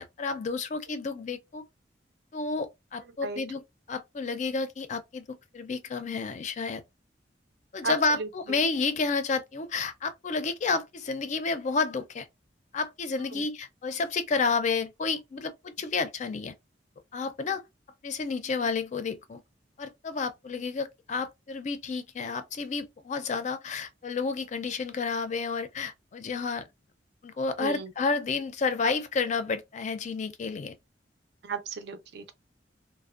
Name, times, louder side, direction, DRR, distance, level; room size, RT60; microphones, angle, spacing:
voice 1, 0.0-1.6 2.3-3.6 3.9-6.8 7.7-12.3 12.7-16.5 17.1-17.6 18.0-19.4 19.8-26.6 27.2-30.7, left 4 dB, 40° left, 0.4 m, -30 dB
voice 2, 7.8-8.6 13.3-13.4 27.6-27.9 31.4-32.3, right 4 dB, 65° right, 0.4 m, -35 dB
2.5 x 2.1 x 2.3 m
head